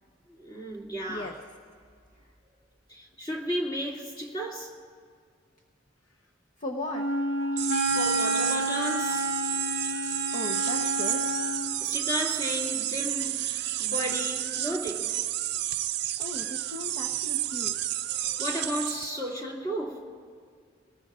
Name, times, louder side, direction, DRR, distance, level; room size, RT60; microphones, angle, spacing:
voice 1, 0.3-1.4 2.9-4.8 7.4-9.4 11.8-15.1 18.2-20.2, equal, 25° left, 2.4 m, -34 dB
voice 2, 6.6-7.0 10.3-11.3 16.2-17.7, left 1 dB, 40° left, 0.9 m, -37 dB
Wind instrument woodwind instrument, 6.9-11.7, equal, 90° left, 1.5 m, -29 dB
sound 1, 7.6-19.1, right 13 dB, 60° right, 0.5 m, -31 dB
29.0 x 19.5 x 2.5 m
head